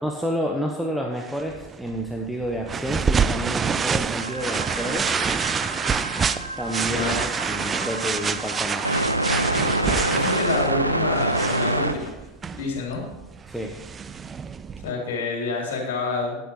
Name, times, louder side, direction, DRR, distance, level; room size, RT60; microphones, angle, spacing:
voice 1, 0.0-5.3 6.6-7.1 7.5-9.0 13.5-13.8, equal, ahead, 1 dB, 1.1 m, -29 dB
sound 1, 1.2-14.9, right 6 dB, 20° right, 0.5 m, -27 dB
sound 2, 4.2-11.9, right 1 dB, 85° right, 0.7 m, -27 dB
voice 2, 6.9-7.2 10.1-12.2 12.5-13.1 14.8-16.4, left 3 dB, 55° left, -1 dB, 3.2 m, -28 dB
11.5 x 10.0 x 4.8 m, 1.0 s
figure-of-eight pair, 85°, 0 cm